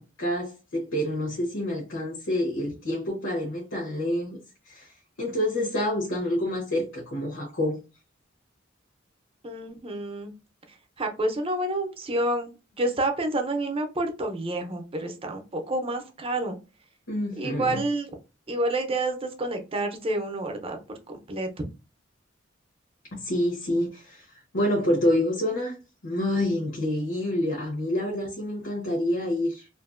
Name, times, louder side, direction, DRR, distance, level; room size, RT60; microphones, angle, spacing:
voice 1, 0.0-4.4 4.6-7.8 17.1-17.8 23.1-25.8 26.0-29.7, left 1 dB, 80° left, 0.9 m, -28 dB
voice 2, 9.4-10.3 11.0-16.6 17.4-18.2 18.5-20.8 21.3-21.5, right 1 dB, 30° right, 0.6 m, -29 dB
2.7 x 2.5 x 2.5 m
head